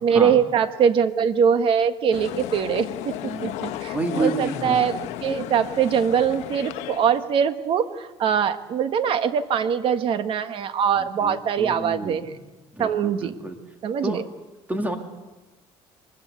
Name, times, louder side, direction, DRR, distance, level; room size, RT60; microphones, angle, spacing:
voice 1, 0.0-12.3 12.8-13.3 13.8-14.2, right 7 dB, 50° right, 10 dB, 1.5 m, -22 dB
sound 1, 2.1-7.3, left 14 dB, 80° left, 1.1 m, -34 dB
voice 2, 3.2-3.6 3.9-4.8 11.0-12.3 12.7-13.6 14.0-14.2 14.7-15.0, right 1 dB, 15° right, 4 dB, 2.8 m, -30 dB
23.5 x 20.5 x 8.2 m, 1.1 s
cardioid pair, 125°, 11 cm